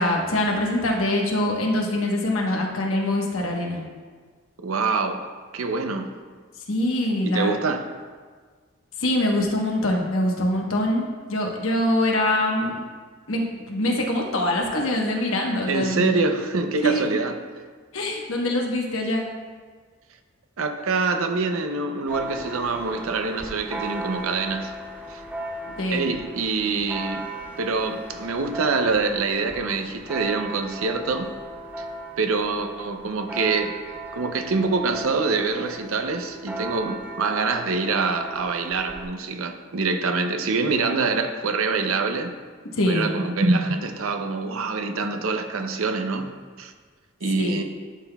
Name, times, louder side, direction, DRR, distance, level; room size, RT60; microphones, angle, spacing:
voice 1, 0.0-3.8 6.5-7.5 9.0-12.7 13.3-16.2 16.8-17.0 17.9-19.3 25.8-26.1 42.7-43.0 47.4-47.6, left 1 dB, 75° left, 0 dB, 1.1 m, -24 dB
voice 2, 4.6-5.2 5.5-6.1 7.2-7.9 15.7-17.3 20.6-24.7 25.1-25.2 25.9-27.3 27.6-31.3 32.2-33.7 34.1-42.3 42.9-46.3 46.6-46.7 47.2-47.6, right 4 dB, 80° right, 7 dB, 0.6 m, -25 dB
Church bell, 22.1-39.0, right 2 dB, 10° right, 0.5 m, -37 dB
11.0 x 5.8 x 2.3 m, 1.5 s
head